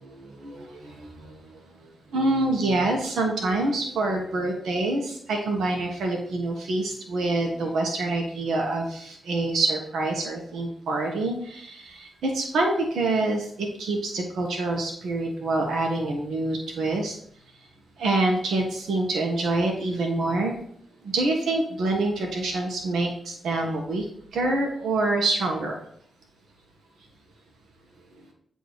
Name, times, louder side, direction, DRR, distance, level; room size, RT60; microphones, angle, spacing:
voice 1, 0.0-17.1 18.0-20.6 21.0-24.0 24.3-25.8, right 2 dB, 80° right, 1 dB, 0.9 m, -26 dB
8.1 x 2.7 x 4.6 m, 0.64 s
supercardioid pair, 50°, 0 cm